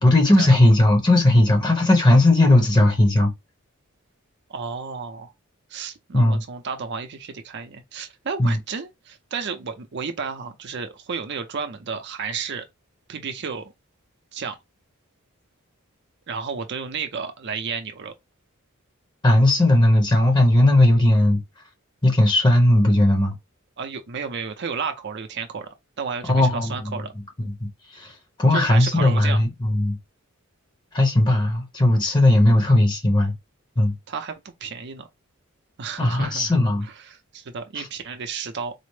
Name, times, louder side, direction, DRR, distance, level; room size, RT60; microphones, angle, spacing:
voice 1, 0.0-3.3 6.1-6.4 8.4-8.6 19.2-21.4 22.0-23.3 26.3-27.1 27.4-27.5 27.9-28.1 28.4-30.0 30.9-33.3 33.8-33.9 36.0-36.9 37.8-37.9, left 1 dB, 20° left, 0.8 m, -17 dB
voice 2, 4.5-5.3 5.7-12.6 13.1-13.7 14.3-14.6 16.3-18.1 23.8-25.7 26.0-27.1 28.5-29.4 34.1-35.1 35.8-38.7, right 5 dB, 55° right, 0.5 m, -32 dB
4.2 x 2.0 x 3.1 m
head